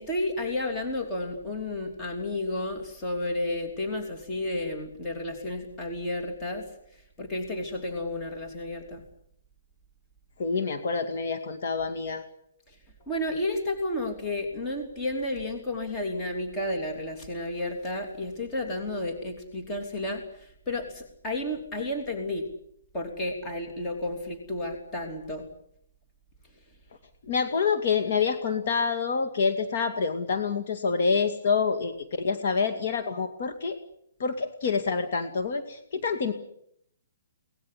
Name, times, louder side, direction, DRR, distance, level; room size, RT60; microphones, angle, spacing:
voice 1, 0.0-6.7 7.2-9.0 13.1-22.5 22.9-25.5, left 1 dB, 15° left, 3 dB, 3.1 m, -32 dB
voice 2, 10.4-12.2 27.3-33.8 34.2-36.3, left 5 dB, 50° left, 6 dB, 2.3 m, -27 dB
23.5 x 19.0 x 10.0 m, 0.73 s
hypercardioid pair, 165°, 0 cm